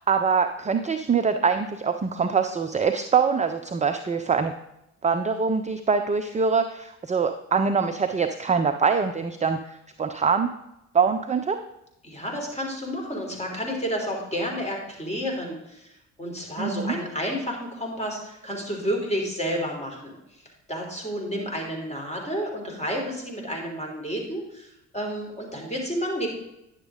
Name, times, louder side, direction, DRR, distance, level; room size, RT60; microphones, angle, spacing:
voice 1, 0.0-4.5 5.0-10.5 10.9-11.6 16.6-17.0, right 5 dB, 20° right, 7 dB, 0.6 m, -24 dB
voice 2, 12.0-15.9 16.2-20.2 20.7-26.3, equal, 15° left, 0 dB, 3.5 m, -30 dB
10.5 x 7.3 x 3.7 m, 0.86 s
hypercardioid pair, 50°, 39 cm